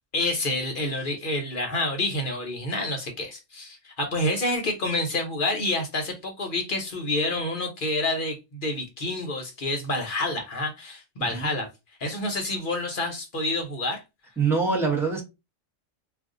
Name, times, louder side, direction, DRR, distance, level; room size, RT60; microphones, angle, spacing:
voice 1, 0.1-11.7 12.0-14.0, left 2 dB, 50° left, 0.8 m, -28 dB
voice 2, 11.2-11.5 14.4-15.2, right 4 dB, ahead, 0.7 m, -24 dB
2.5 x 2.4 x 3.7 m
omnidirectional pair, 1.3 m